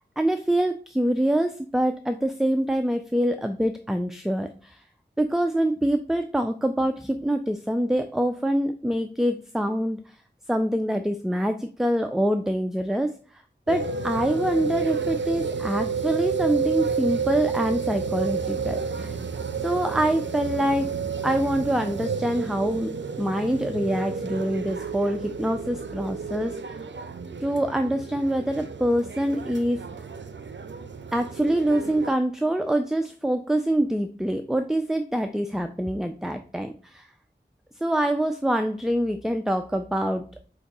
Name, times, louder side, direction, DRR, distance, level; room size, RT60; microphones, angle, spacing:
voice 1, 0.2-4.8 5.2-10.0 10.5-13.1 13.7-19.2 19.6-20.9 21.2-22.9 23.2-26.8 27.4-29.8 31.1-37.1 37.8-40.2, right 1 dB, ahead, 7 dB, 0.3 m, -25 dB
sound 1, 13.7-32.1, right 5 dB, 85° right, 0.4 m, -31 dB
4.7 x 2.6 x 4.1 m, 0.41 s
wide cardioid pair, 45°, 19 cm